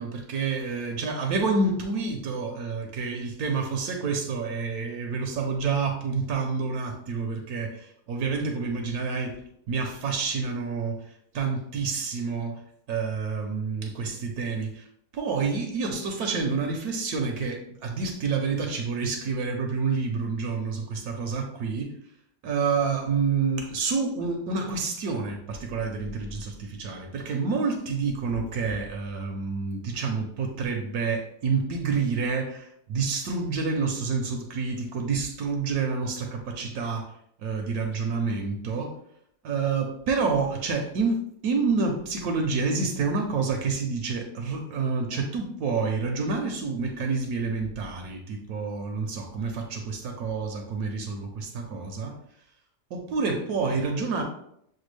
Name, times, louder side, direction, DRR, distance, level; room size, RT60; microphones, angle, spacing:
voice 1, 0.0-9.4 9.7-11.0 11.3-12.6 12.9-14.9 15.1-21.9 22.4-37.1 37.4-38.9 39.4-52.1 52.9-54.2, right 4 dB, 75° right, 3 dB, 1.1 m, -28 dB
6.7 x 2.3 x 3.2 m, 0.72 s
omnidirectional pair, 1.7 m